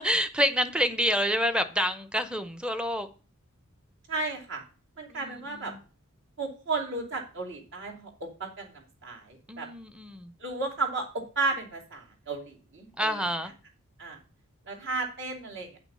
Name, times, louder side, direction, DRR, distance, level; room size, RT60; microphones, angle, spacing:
voice 1, 0.0-3.1 5.1-5.8 9.5-10.3 13.0-13.5, equal, 5° right, 0.7 m, -28 dB
voice 2, 4.1-4.6 5.0-5.7 6.4-9.7 10.4-13.2 14.0-14.2 14.7-15.7, right 3 dB, 55° right, 2.7 m, -34 dB
9.0 x 6.2 x 5.5 m
head